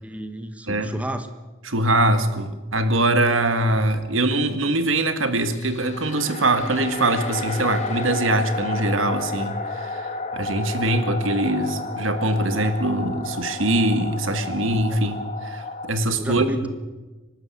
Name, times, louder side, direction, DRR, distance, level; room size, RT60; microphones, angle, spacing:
voice 1, 0.0-1.3 14.9-15.2 16.2-16.7, right 1 dB, 5° right, 8 dB, 1.3 m, -32 dB
voice 2, 1.6-16.4, right 1 dB, 85° right, 9 dB, 1.7 m, -23 dB
sound 1, 5.5-15.9, left 3 dB, 35° left, 1.7 m, -31 dB
24.5 x 12.5 x 8.5 m, 1.2 s
head